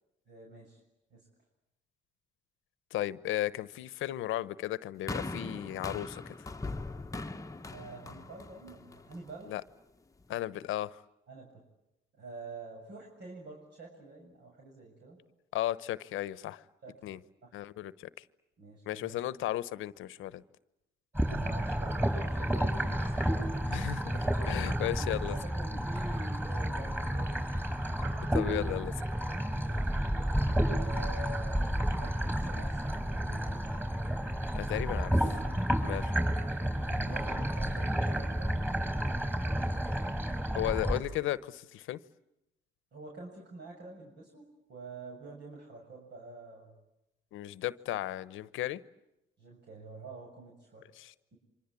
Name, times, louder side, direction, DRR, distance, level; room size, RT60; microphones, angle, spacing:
voice 1, 0.3-0.8 1.1-1.3 7.7-9.5 11.3-11.6 12.2-15.2 16.8-17.0 17.4-17.5 18.6-19.1 21.1-23.3 24.4-27.5 29.5-29.9 30.7-33.7 36.9-38.9 42.9-44.4 44.7-46.8 49.4-50.8 51.3-51.4, right 3 dB, 60° right, 0 dB, 7.2 m, -47 dB
voice 2, 2.9-6.3 9.5-9.6 10.3-11.0 15.5-16.6 17.0-17.2 17.5-18.1 18.9-20.4 23.6-25.4 28.0-28.9 34.6-35.4 35.8-36.1 40.5-42.0 47.3-48.8 50.9-51.3, left 14 dB, 85° left, 17 dB, 1.0 m, -35 dB
sound 1, 5.1-9.4 10.2-10.3, left 2 dB, 15° left, 1.2 m, -40 dB
sound 2, 21.1-41.0, equal, 10° right, 5.6 m, -31 dB
28.0 x 25.0 x 8.4 m, 0.89 s
cardioid pair, 90°, 20 cm